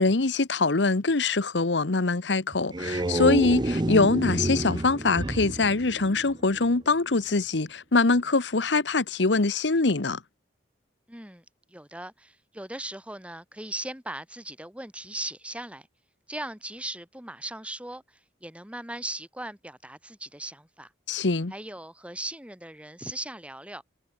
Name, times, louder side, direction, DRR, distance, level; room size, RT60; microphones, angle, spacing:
voice 1, 0.0-10.2 21.1-21.5, left 3 dB, 80° left, 1.1 m, -23 dB
sound 1, 2.5-6.7, right 1 dB, 25° right, 0.6 m, -29 dB
voice 2, 11.1-15.9 16.3-20.9 21.5-23.8, right 1 dB, 5° right, 5.9 m, -38 dB
head